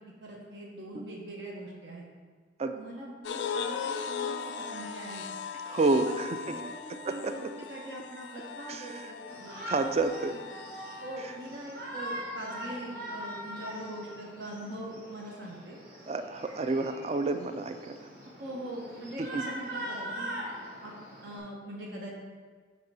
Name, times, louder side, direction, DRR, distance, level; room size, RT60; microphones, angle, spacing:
voice 1, 0.2-2.0 2.7-5.3 6.0-7.4 7.7-9.7 11.0-15.8 16.7-16.8 18.4-20.3 20.8-20.9 21.2-22.1, right 1 dB, 75° right, -3 dB, 1.1 m, -42 dB
sound 1, 3.2-11.6, left 6 dB, 80° left, 0.4 m, -39 dB
voice 2, 5.7-6.6 7.0-7.5 8.7-9.0 9.7-10.4 11.2-11.3 16.1-18.1 19.2-19.4, right 3 dB, 35° right, 8 dB, 0.4 m, -29 dB
Shout, 9.3-21.4, equal, 55° right, 1.5 m, -42 dB
6.6 x 3.6 x 5.5 m, 1.5 s
head